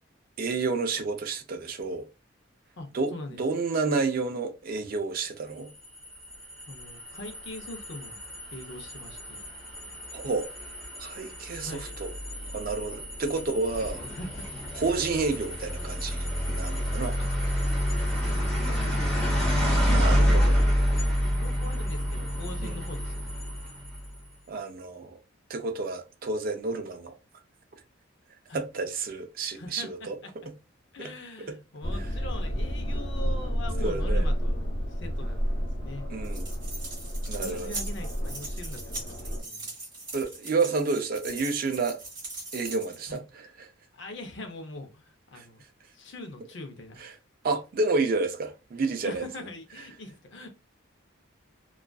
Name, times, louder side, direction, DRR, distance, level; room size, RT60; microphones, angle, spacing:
voice 1, 0.4-2.1 2.9-3.1 3.4-5.7 10.1-10.5 11.0-12.1 12.5-14.0 14.7-17.2 19.9-20.7 22.6-22.8 24.5-25.2 25.5-27.1 28.5-30.2 31.0-31.1 31.5-31.6 33.8-34.3 36.1-36.5 37.3-37.7 40.1-42.0 42.5-43.7 45.3-45.4 47.0-47.1 47.4-49.2, right 3 dB, 45° right, 0.3 m, -30 dB
voice 2, 2.8-3.4 6.7-8.2 8.5-9.4 11.6-11.9 13.8-14.5 14.9-15.1 17.2-17.3 18.2-19.1 21.3-23.3 28.5-28.6 29.6-30.3 30.9-36.1 37.3-39.7 43.1-43.2 43.9-45.6 45.9-47.1 49.0-50.5, left 2 dB, 60° left, 0.5 m, -42 dB
sound 1, 5.7-24.2, equal, 5° left, 0.9 m, -28 dB
London Underground, 31.8-39.4, equal, 90° left, 1.0 m, -30 dB
sound 2, 36.2-43.2, right 2 dB, 25° right, 1.1 m, -40 dB
2.4 x 2.3 x 2.2 m
head